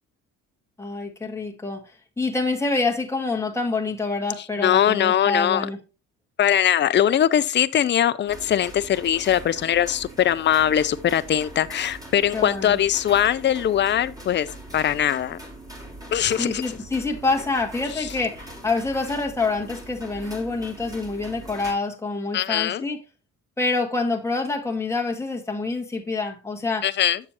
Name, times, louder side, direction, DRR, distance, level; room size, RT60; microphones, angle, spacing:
voice 1, 0.8-1.8 2.2-5.8 12.3-12.8 16.4-23.0 23.6-26.9, left 3 dB, 10° left, 1.7 m, -26 dB
voice 2, 4.6-5.7 6.4-14.5 14.7-15.4 16.1-16.6 18.0-18.1 22.3-22.8 26.8-27.2, left 10 dB, 40° left, 0.5 m, -21 dB
sound 1, 8.3-21.7, right 1 dB, 10° right, 2.3 m, -41 dB
7.3 x 6.7 x 2.9 m
cardioid pair, 90°, 30 cm